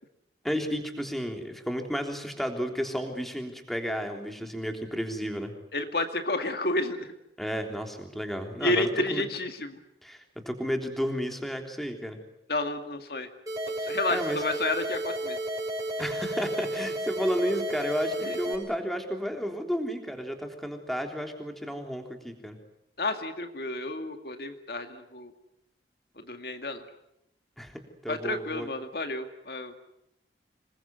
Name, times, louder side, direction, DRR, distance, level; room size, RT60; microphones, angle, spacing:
voice 1, 0.4-5.5 7.4-9.3 10.0-12.2 14.1-14.4 16.0-22.6 27.6-28.7, equal, ahead, 4 dB, 3.4 m, -32 dB
voice 2, 5.7-7.1 8.6-9.8 12.5-13.3 13.8-15.4 18.2-18.4 23.0-25.3 26.2-26.8 28.1-29.7, left 2 dB, 60° left, 7 dB, 2.1 m, -31 dB
sound 1, 13.5-18.5, right 1 dB, 20° right, 6.4 m, -32 dB
27.0 x 21.5 x 9.4 m, 0.83 s
head